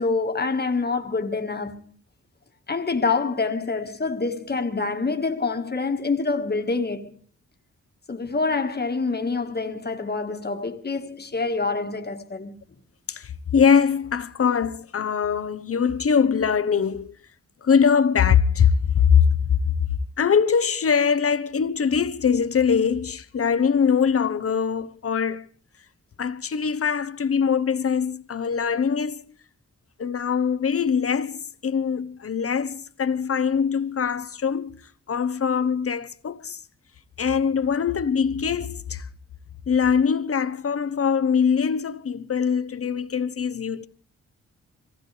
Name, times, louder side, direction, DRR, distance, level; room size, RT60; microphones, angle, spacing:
voice 1, 0.0-1.9 2.7-7.2 8.1-12.5, left 4 dB, 35° left, 1.7 m, -26 dB
voice 2, 13.1-17.2 17.6-19.7 20.2-25.5 26.2-29.3 30.0-34.8 35.1-36.6 37.2-39.1 39.7-43.9, left 6 dB, 50° left, 1.0 m, -22 dB
25.0 x 16.5 x 3.4 m
wide cardioid pair, 95°, 30 cm